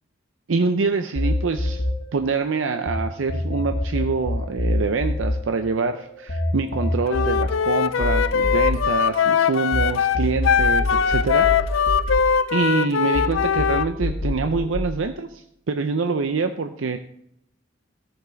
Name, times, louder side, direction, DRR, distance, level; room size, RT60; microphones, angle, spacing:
voice 1, 0.5-1.8 2.1-11.8 12.5-17.0, right 4 dB, 85° right, 7 dB, 0.6 m, -25 dB
sound 1, 1.2-3.0 3.3-9.8 10.2-12.8 13.2-14.8, left 1 dB, 65° left, 1.3 m, -26 dB
Wind instrument woodwind instrument, 7.1-13.9, left 7 dB, 85° left, 0.5 m, -21 dB
14.0 x 7.1 x 4.0 m, 0.71 s
head